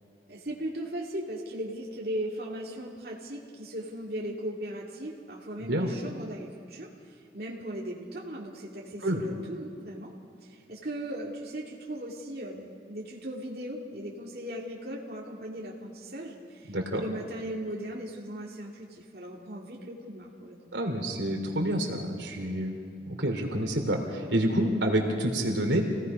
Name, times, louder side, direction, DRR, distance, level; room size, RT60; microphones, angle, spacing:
voice 1, 0.3-6.9 7.3-10.1 10.4-20.6, right 1 dB, 55° right, -3 dB, 2.5 m, -38 dB
voice 2, 16.7-17.0 20.7-22.8 23.1-25.8, right 1 dB, 90° right, 2 dB, 3.3 m, -28 dB
28.0 x 17.5 x 5.5 m, 2.4 s
head